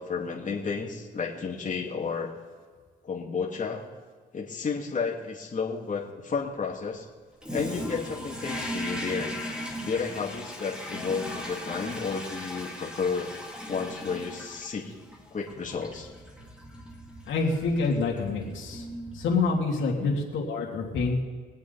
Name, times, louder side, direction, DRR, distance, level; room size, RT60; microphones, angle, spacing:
voice 1, 0.0-2.3 3.0-3.8 4.3-7.0 7.5-9.4 9.8-13.3 13.7-14.9 15.3-16.1 20.0-20.2, left 5 dB, 40° left, -2 dB, 2.2 m, -32 dB
Toilet flush, 7.4-19.7, equal, 5° right, 2.6 m, -38 dB
voice 2, 17.3-18.8 19.1-21.2, left 3 dB, 80° left, -1 dB, 2.8 m, -27 dB
22.5 x 8.3 x 4.2 m, 1.5 s
cardioid pair, 90°, 20 cm